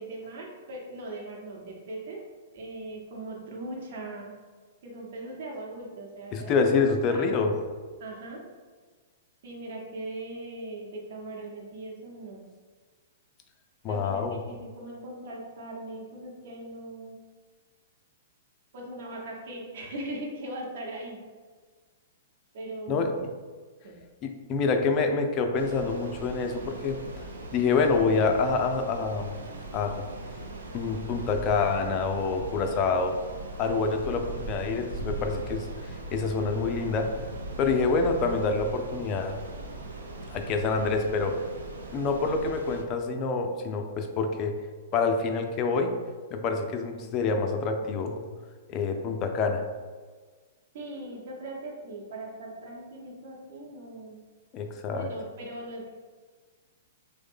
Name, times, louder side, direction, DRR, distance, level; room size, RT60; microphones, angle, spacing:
voice 1, 0.0-2.2 2.5-4.3 4.8-6.6 7.0-7.3 8.0-8.4 9.4-12.4 13.9-17.2 18.7-21.2 22.5-23.0 23.8-24.0 50.7-54.2 54.9-56.0, right 2 dB, 55° right, -2 dB, 0.8 m, -39 dB
voice 2, 6.3-7.5 13.8-14.4 22.9-23.3 24.2-27.0 27.5-29.4 29.7-30.1 30.7-33.2 33.6-37.1 37.6-39.4 40.3-41.4 41.9-44.5 44.9-46.0 46.3-48.2 48.7-49.6 54.5-55.1, left 4 dB, 35° left, 4 dB, 0.4 m, -27 dB
sound 1, 25.6-42.8, right 2 dB, 75° right, 0.4 m, -39 dB
3.2 x 2.1 x 3.5 m, 1.5 s
figure-of-eight pair, 110°, 0 cm